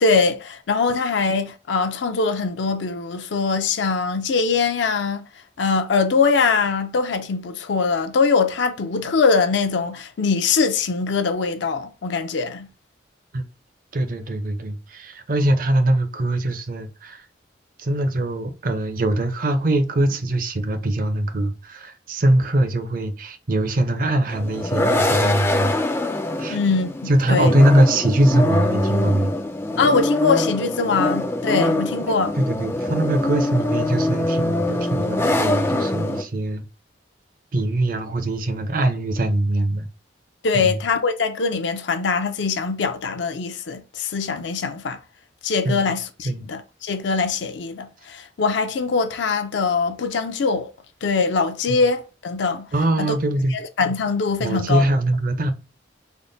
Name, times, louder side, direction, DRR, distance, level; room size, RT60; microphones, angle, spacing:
voice 1, 0.0-5.2 5.6-12.7 26.5-27.5 29.8-32.4 40.4-45.0 45.4-50.7 51.0-52.7 53.0-53.2 53.5-54.8, left 4 dB, 75° left, 0.5 m, -22 dB
voice 2, 13.9-17.2 17.8-25.7 26.4-26.6 27.1-29.3 32.4-36.6 37.5-39.9 40.5-40.8 45.6-45.9 46.2-46.5 51.7-51.8 52.7-53.5 54.4-55.5, right 1 dB, 50° right, 0.5 m, -22 dB
sound 1, 24.3-36.2, left 1 dB, 15° left, 0.3 m, -24 dB
3.5 x 2.1 x 3.9 m
head